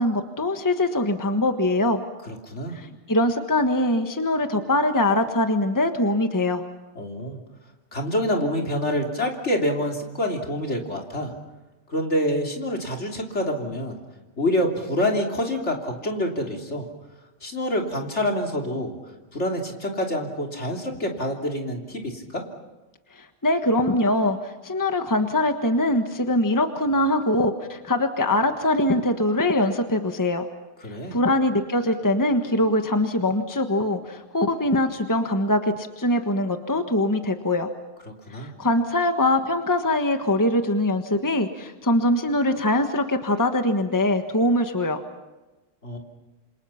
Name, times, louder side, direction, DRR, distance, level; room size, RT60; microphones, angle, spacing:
voice 1, 0.0-2.0 2.7-6.6 23.2-30.4 31.1-37.7 38.3-45.0, left 1 dB, 15° left, 6 dB, 1.4 m, -22 dB
voice 2, 2.3-2.8 7.0-7.4 7.9-11.3 11.9-14.0 14.4-16.9 17.4-18.9 19.3-22.4 30.8-31.2 38.3-38.5 45.8-46.0, left 1 dB, 65° left, 1 dB, 3.6 m, -26 dB
27.5 x 27.5 x 5.8 m, 1.1 s
omnidirectional pair, 1.3 m